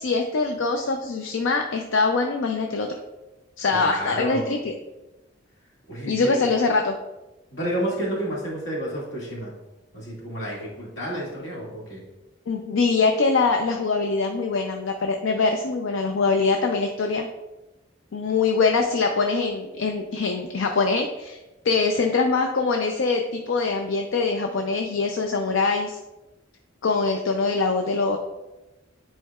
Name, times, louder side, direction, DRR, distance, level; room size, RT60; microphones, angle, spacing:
voice 1, 0.0-3.0 3.6-4.7 6.1-6.9 12.5-17.3 18.1-21.4 21.6-26.0 26.8-28.2, left 4 dB, 85° left, 4 dB, 0.5 m, -23 dB
voice 2, 3.7-4.5 5.9-6.5 7.5-9.5 9.9-12.0, equal, 65° left, -4 dB, 2.1 m, -30 dB
9.2 x 4.4 x 2.4 m, 1.0 s
head